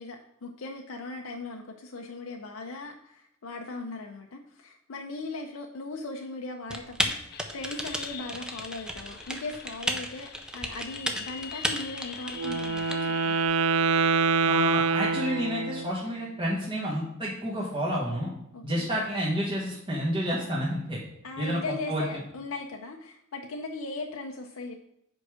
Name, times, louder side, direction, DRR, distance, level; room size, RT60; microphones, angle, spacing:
voice 1, 0.0-13.3 18.5-18.9 21.2-24.7, left 3 dB, 90° left, 2 dB, 0.6 m, -38 dB
Typing, 6.7-13.0, equal, 5° right, 0.5 m, -34 dB
sound 1, 7.3-13.5, left 9 dB, 50° left, 0.5 m, -44 dB
Wind instrument woodwind instrument, 12.3-16.0, right 4 dB, 75° right, 0.4 m, -25 dB
voice 2, 14.5-18.3 18.6-21.0 21.4-22.0, equal, 25° right, -5 dB, 1.1 m, -29 dB
5.2 x 4.7 x 6.2 m, 0.77 s
head